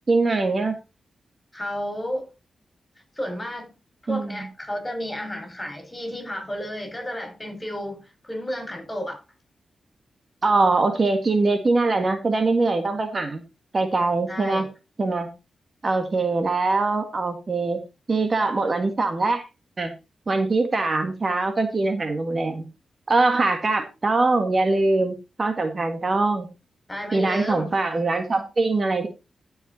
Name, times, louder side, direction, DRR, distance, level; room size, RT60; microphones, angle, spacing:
voice 1, 0.1-0.7 4.1-4.3 10.4-13.4 13.7-14.7 15.0-15.3 15.8-17.8 18.1-19.5 19.8-19.9 20.3-22.6 23.1-26.5 27.1-29.1, right 3 dB, 45° right, 1.7 m, -22 dB
voice 2, 1.5-2.3 3.2-3.7 4.0-9.2 14.3-14.7 26.9-27.8, equal, 20° left, 5.6 m, -32 dB
14.5 x 5.6 x 4.1 m
cardioid pair, 65°, 0 cm